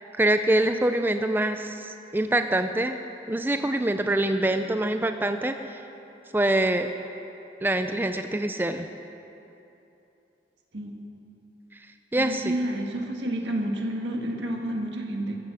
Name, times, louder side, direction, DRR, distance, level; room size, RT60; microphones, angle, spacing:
voice 1, 0.2-3.0 3.3-5.8 6.3-6.9 7.6-8.9 12.1-12.5, right 1 dB, 10° right, 8 dB, 0.4 m, -25 dB
voice 2, 12.2-15.4, right 1 dB, 90° right, 2 dB, 1.7 m, -30 dB
14.0 x 10.0 x 7.4 m, 3.0 s
head